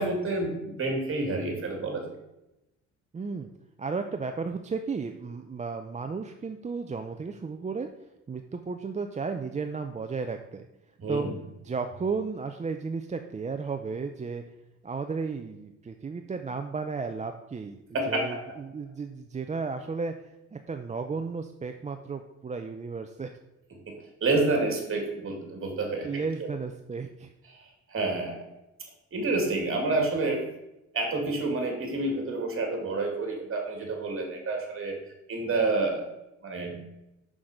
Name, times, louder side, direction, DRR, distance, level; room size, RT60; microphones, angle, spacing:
voice 1, 0.0-2.2 11.0-11.3 17.9-18.4 23.9-24.0 24.2-26.1 27.9-28.4 29.1-30.4 30.9-35.0 35.3-36.1 36.4-36.8, right 2 dB, 45° right, 2 dB, 2.5 m, -28 dB
voice 2, 3.1-3.5 3.8-7.9 8.3-10.7 11.1-11.3 11.6-14.4 14.8-17.8 18.1-23.3 26.0-27.3, right 4 dB, 25° right, 6 dB, 0.5 m, -34 dB
6.3 x 6.1 x 5.0 m, 0.93 s
cardioid pair, 90°, 30 cm